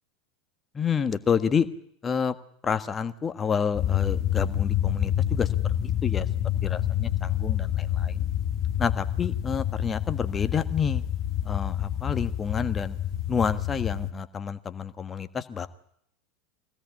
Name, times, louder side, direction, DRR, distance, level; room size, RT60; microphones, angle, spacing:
voice 1, 0.7-1.7 2.0-2.3 2.6-5.5 5.8-6.3 6.6-8.2 8.8-11.0 11.4-13.0 13.3-15.7, left 6 dB, 25° left, 11 dB, 1.5 m, -29 dB
sound 1, 3.7-14.1, left 11 dB, 40° left, 1.9 m, -28 dB
24.0 x 17.0 x 8.6 m, 0.71 s
figure-of-eight pair, 80°, 0 cm